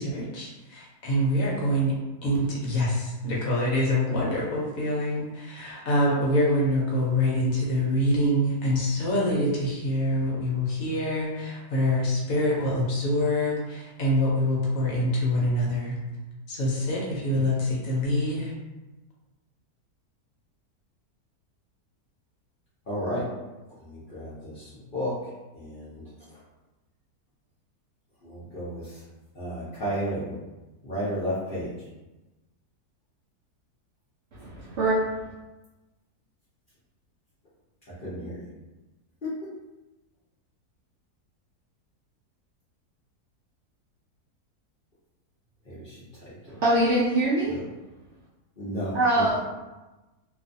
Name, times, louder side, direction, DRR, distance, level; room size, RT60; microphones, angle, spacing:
voice 1, 0.0-1.9 2.2-16.0 16.5-18.5, left 1 dB, 65° left, -4 dB, 1.0 m, -25 dB
voice 2, 22.9-23.2 23.8-25.2 25.5-26.0 28.2-29.0 29.3-30.3 30.8-31.7 38.0-38.5 39.2-39.3 45.7-46.0 47.5-47.6 48.6-49.4, equal, 50° left, -10 dB, 0.6 m, -32 dB
voice 3, 34.3-35.0 46.5-47.6 48.9-49.4, right 1 dB, 75° right, -7 dB, 0.6 m, -23 dB
2.6 x 2.3 x 2.5 m, 1.1 s
omnidirectional pair, 1.7 m